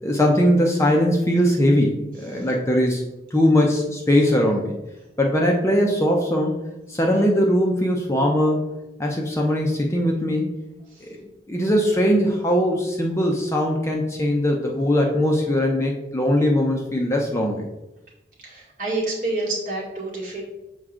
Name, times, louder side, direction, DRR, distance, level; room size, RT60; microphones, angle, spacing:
voice 1, 0.0-3.0 3.3-4.7 5.2-6.5 6.9-8.6 9.0-10.5 11.0-11.2 11.5-17.7, equal, 15° left, 0 dB, 0.6 m, -20 dB
voice 2, 18.4-20.4, right 2 dB, 50° right, -4 dB, 1.8 m, -28 dB
6.4 x 4.4 x 3.7 m, 0.98 s
head